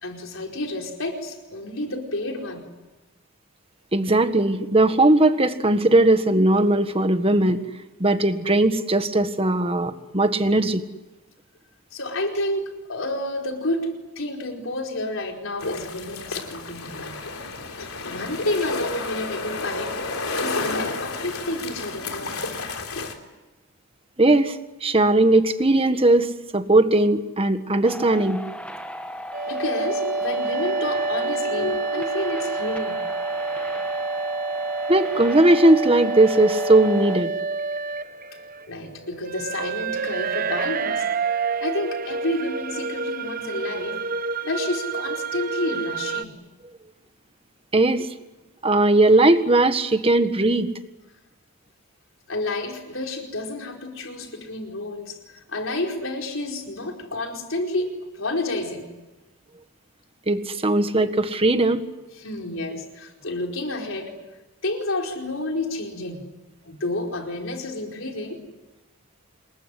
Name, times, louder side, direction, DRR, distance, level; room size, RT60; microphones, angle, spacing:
voice 1, 0.0-2.7 11.9-17.2 17.8-20.0 20.3-22.4 29.5-33.0 38.7-41.1 41.6-44.0 44.4-46.4 52.3-58.9 62.1-64.1 64.6-66.3 66.6-68.4, left 1 dB, 65° left, 2 dB, 4.8 m, -30 dB
voice 2, 3.9-7.6 8.0-10.8 24.2-24.6 24.8-28.4 34.9-37.3 47.7-48.1 48.6-50.7 60.3-61.8, right 2 dB, 25° right, 9 dB, 1.6 m, -18 dB
sound 1, 15.6-23.1, left 3 dB, 85° left, 3.5 m, -31 dB
sound 2, 27.8-37.2, left 1 dB, 5° left, 1.7 m, -36 dB
sound 3, 29.3-46.2, right 4 dB, 40° right, 0.9 m, -28 dB
27.5 x 21.5 x 10.0 m, 1.1 s
head